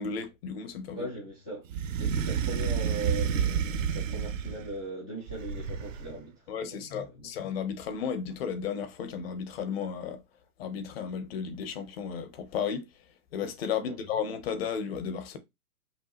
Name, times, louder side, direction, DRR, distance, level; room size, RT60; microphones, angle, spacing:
voice 1, 0.0-1.1 6.5-10.2 10.6-12.8 13.3-15.4, left 7 dB, 40° left, 1.0 m, -34 dB
voice 2, 0.9-1.7 2.0-6.4 6.7-7.3 13.8-14.0, right 2 dB, 10° left, 0.3 m, -39 dB
sound 1, 1.7-4.7 5.3-6.2, right 7 dB, 60° right, 0.8 m, -30 dB
5.3 x 2.3 x 3.1 m
hypercardioid pair, 135°, 44 cm